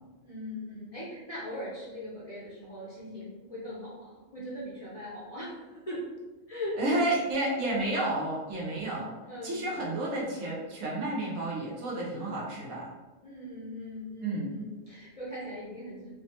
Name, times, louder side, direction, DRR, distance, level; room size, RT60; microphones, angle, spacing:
voice 1, 0.2-6.1 6.5-7.1 9.3-9.7 13.2-16.1, left 1 dB, 40° left, -8 dB, 0.5 m, -40 dB
voice 2, 6.8-9.1 9.4-12.9 14.2-14.5, right 1 dB, 85° right, -4 dB, 1.2 m, -31 dB
3.2 x 2.1 x 2.8 m, 1.2 s
omnidirectional pair, 1.3 m